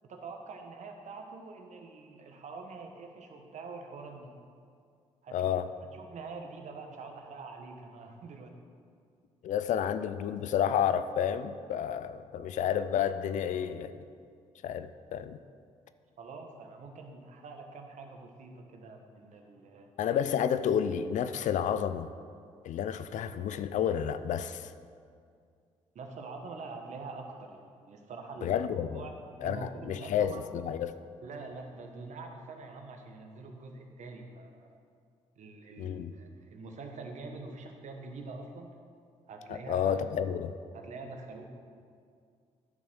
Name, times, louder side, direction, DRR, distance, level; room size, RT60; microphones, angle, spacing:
voice 1, 0.1-4.3 5.2-5.5 5.8-8.5 16.2-19.9 25.9-29.1 29.4-30.4 31.2-34.8 35.4-38.7 39.3-40.2 40.7-41.4, right 3 dB, 60° right, 3 dB, 1.3 m, -45 dB
voice 2, 5.3-5.7 9.4-13.9 14.6-15.4 20.0-22.1 22.6-24.7 28.4-29.0 29.4-30.9 35.8-36.1 39.5-40.5, left 9 dB, 65° left, 12 dB, 0.5 m, -30 dB
9.5 x 6.1 x 6.2 m, 2.3 s
supercardioid pair, 55°, 13 cm